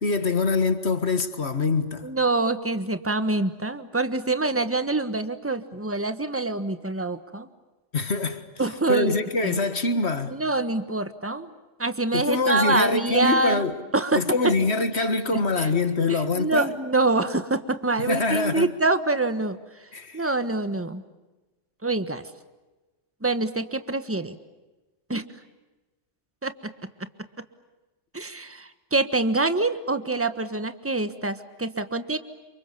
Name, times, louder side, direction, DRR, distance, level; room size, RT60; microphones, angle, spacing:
voice 1, 0.0-2.1 7.9-8.5 8.9-10.3 12.1-13.8 14.1-16.7 18.0-18.7 19.9-20.2, left 3 dB, 60° left, 2.0 m, -24 dB
voice 2, 2.0-7.5 8.6-9.1 9.4-9.6 10.3-11.5 11.8-13.7 13.9-14.5 14.9-15.0 15.3-15.7 16.1-19.6 20.1-21.0 21.8-22.2 23.2-24.4 25.1-25.2 26.4-26.7 28.1-32.2, right 2 dB, 10° right, 1.4 m, -25 dB
29.5 x 27.5 x 6.9 m
omnidirectional pair, 1.2 m